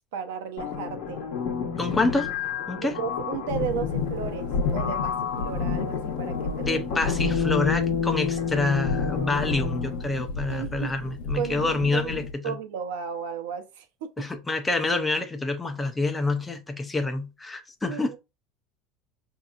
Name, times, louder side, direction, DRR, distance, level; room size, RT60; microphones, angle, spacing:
voice 1, 0.1-1.2 2.8-6.8 10.5-11.0 11.4-12.1 12.4-14.3 17.9-18.2, right 8 dB, 90° right, 0.7 m, -34 dB
sound 1, 0.6-10.1, left 7 dB, 55° left, 1.1 m, -30 dB
voice 2, 1.8-2.3 2.7-3.0 6.6-12.6 14.2-18.2, left 3 dB, 10° left, 0.4 m, -27 dB
sound 2, 3.5-12.3, left 4 dB, 75° left, 0.9 m, -32 dB
5.3 x 2.8 x 2.4 m
cardioid pair, 175°, 0 cm